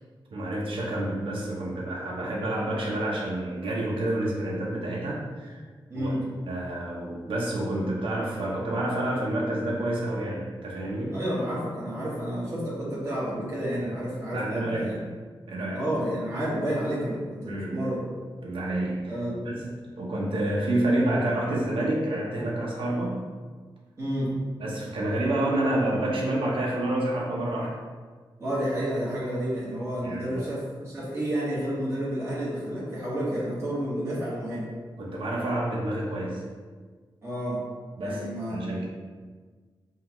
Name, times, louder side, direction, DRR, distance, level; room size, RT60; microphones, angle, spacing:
voice 1, 0.3-5.6 5.9-6.1 6.5-11.2 14.3-15.0 15.5-15.9 17.5-17.9 18.4-19.2 19.4-23.3 24.6-27.8 30.0-30.5 35.0-36.5 38.0-38.9, right 1 dB, 75° right, -3 dB, 0.7 m, -29 dB
voice 2, 5.9-6.3 11.1-15.0 15.7-18.1 19.1-19.4 24.0-24.4 28.4-34.7 37.2-37.6 38.0-38.7, equal, 30° right, -8 dB, 1.3 m, -30 dB
5.5 x 2.4 x 3.0 m, 1.5 s
wide cardioid pair, 165°, 9 cm